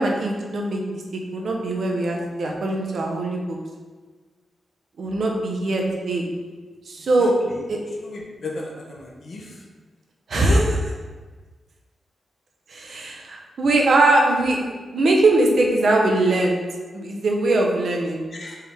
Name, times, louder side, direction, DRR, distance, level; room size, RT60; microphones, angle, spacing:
voice 1, 0.0-3.6 5.0-6.2 6.9-7.3 7.7-7.8 10.3-10.6 12.7-16.6 16.9-18.2, right 2 dB, 55° right, 0 dB, 0.7 m, -21 dB
voice 2, 8.0-9.5 10.3-10.6 18.3-18.6, left 2 dB, 45° left, -1 dB, 0.8 m, -32 dB
4.5 x 3.4 x 3.4 m, 1.4 s
wide cardioid pair, 165°, 0 cm